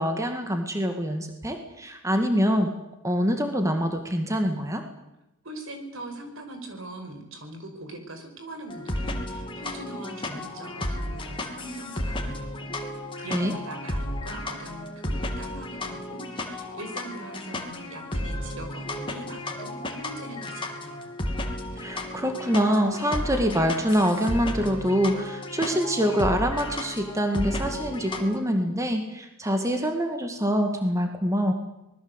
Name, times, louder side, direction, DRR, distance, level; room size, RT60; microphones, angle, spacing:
voice 1, 0.0-2.7 3.0-4.8 13.3-13.5 21.8-31.5, equal, 15° right, 5 dB, 2.0 m, -25 dB
voice 2, 5.4-12.6 13.2-21.1, right 1 dB, 70° right, 6 dB, 5.4 m, -41 dB
sound 1, 8.7-28.4, left 1 dB, 25° left, 2.9 m, -33 dB
26.5 x 20.5 x 8.2 m, 0.91 s
head